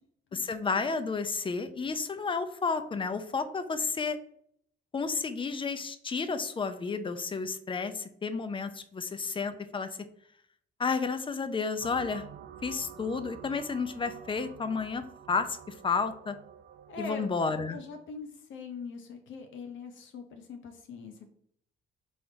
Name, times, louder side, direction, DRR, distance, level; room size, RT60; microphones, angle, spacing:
voice 1, 0.3-4.2 4.9-9.9 10.8-12.2 12.6-16.3 17.0-17.8, left 4 dB, 25° left, 10 dB, 0.5 m, -31 dB
sound 1, 11.8-17.6, right 9 dB, 60° right, 0.5 m, -48 dB
voice 2, 16.9-17.3 17.7-21.3, left 4 dB, 75° left, 5 dB, 0.7 m, -42 dB
3.8 x 3.4 x 3.9 m, 0.65 s
cardioid pair, 90°, 20 cm